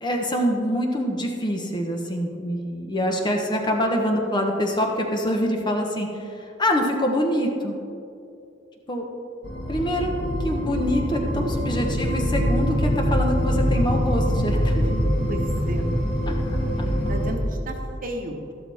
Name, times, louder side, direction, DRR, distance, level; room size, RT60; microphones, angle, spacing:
voice 1, 0.0-7.8 8.9-9.1 9.7-10.1 10.4-15.1 16.3-16.4, equal, 25° left, 2 dB, 1.1 m, -25 dB
sound 1, 9.4-17.3, equal, 65° left, 2.0 m, -24 dB
voice 2, 15.3-15.9 16.6-17.7 18.0-18.5, right 1 dB, 45° right, 2 dB, 1.3 m, -34 dB
13.0 x 12.0 x 3.5 m, 2.6 s
head